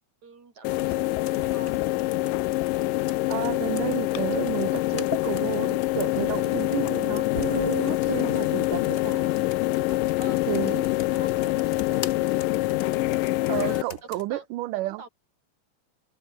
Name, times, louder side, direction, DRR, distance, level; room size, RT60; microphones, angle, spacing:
voice 1, 0.2-1.8 9.9-10.8 11.1-12.0 13.4-14.5 14.7-15.1, right 5 dB, 55° right, 6.3 m, -46 dB
sound 1, 0.6-13.8, left 18 dB, 80° left, 2.3 m, -25 dB
Computer keyboard, 0.8-14.3, left 6 dB, 60° left, 0.8 m, -44 dB
voice 2, 3.3-9.4 10.5-10.9 13.5-15.0, right 17 dB, 80° right, 2.3 m, -31 dB
sound 2, 8.3-12.6, left 7 dB, 45° left, 2.2 m, -47 dB
omnidirectional pair, 3.9 m